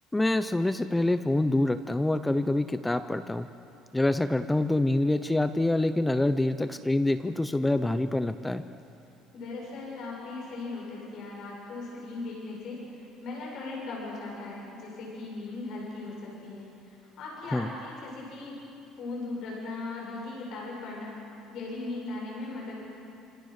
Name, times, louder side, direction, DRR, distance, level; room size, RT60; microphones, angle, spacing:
voice 1, 0.1-3.5 3.9-8.6 17.5-17.7, left 2 dB, 5° left, 10 dB, 0.5 m, -26 dB
voice 2, 9.3-18.5 19.0-21.1 21.5-22.8, left 3 dB, 45° left, -3 dB, 7.2 m, -38 dB
29.0 x 26.5 x 6.6 m, 2.7 s
cardioid pair, 175°, 0 cm